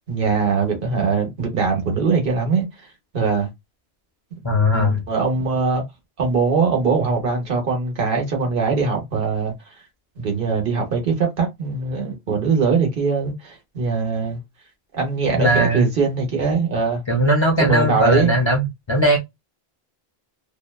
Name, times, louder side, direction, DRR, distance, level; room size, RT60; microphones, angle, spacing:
voice 1, 0.1-2.7 3.1-3.5 4.7-5.8 6.2-9.5 10.2-14.4 14.9-17.0 17.6-18.3, right 5 dB, 60° right, 1.1 m, -21 dB
voice 2, 4.4-5.0 15.4-15.9 17.1-19.2, equal, 35° left, 0.5 m, -18 dB
2.7 x 2.1 x 2.3 m
omnidirectional pair, 1.0 m